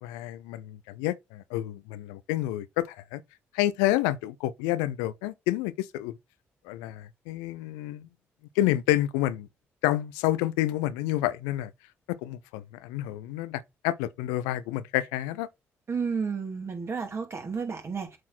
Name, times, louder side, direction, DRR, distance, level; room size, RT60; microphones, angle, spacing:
voice 1, 0.0-3.2 3.5-6.1 6.6-8.1 8.6-9.5 9.8-11.7 12.1-15.5, left 15 dB, 90° left, 0.4 m, -29 dB
voice 2, 15.9-18.2, right 5 dB, 45° right, 2.7 m, -32 dB
7.6 x 3.8 x 4.3 m
hypercardioid pair, 50°, 6 cm